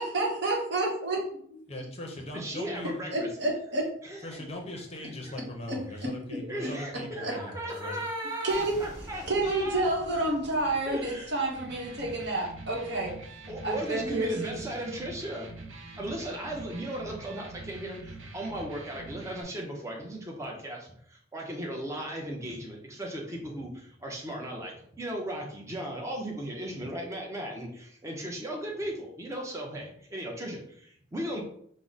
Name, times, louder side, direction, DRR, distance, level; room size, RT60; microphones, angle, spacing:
voice 1, 0.0-1.2 3.1-3.9 5.7-6.7 7.2-7.3 8.4-8.8 9.3-13.1 13.6-14.6, right 2 dB, 55° right, -1 dB, 1.0 m, -29 dB
voice 2, 1.7-2.9 4.2-8.0, left 1 dB, 30° left, 1 dB, 0.6 m, -40 dB
voice 3, 2.3-3.3 4.0-4.4 5.2-5.4 6.3-9.9 10.9-11.4 13.5-15.5 16.0-31.4, right 1 dB, 15° right, -1 dB, 0.6 m, -36 dB
sound 1, 7.7-13.4, equal, 30° right, 1.4 m, -48 dB
Electric guitar, 11.4-19.4, right 3 dB, 75° right, 0.6 m, -45 dB
4.6 x 2.0 x 3.9 m, 0.65 s
head